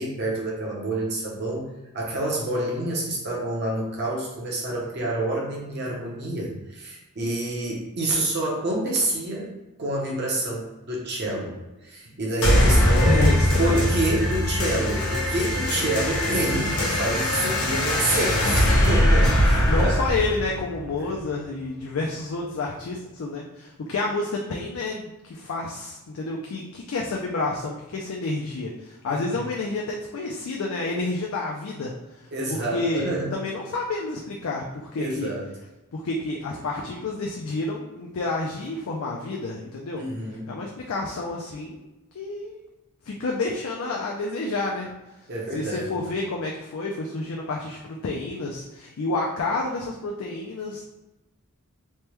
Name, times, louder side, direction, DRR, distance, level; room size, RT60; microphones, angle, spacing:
voice 1, 0.0-1.7 1.9-9.5 9.8-13.2 13.6-19.9 21.0-21.1 29.1-29.5 32.3-33.3 35.0-35.5 40.0-40.5 45.3-46.1, right 2 dB, 50° right, -3 dB, 0.8 m, -28 dB
sound 1, 12.4-21.4, left 1 dB, 90° left, 0.9 m, -21 dB
voice 2, 13.0-13.9 19.7-31.9 32.2-32.3 32.7-35.3 35.9-40.0 40.5-41.8 42.1-42.6 43.0-44.9 45.5-50.8, left 3 dB, 65° left, -1 dB, 0.4 m, -29 dB
3.3 x 2.2 x 3.0 m, 1.0 s
head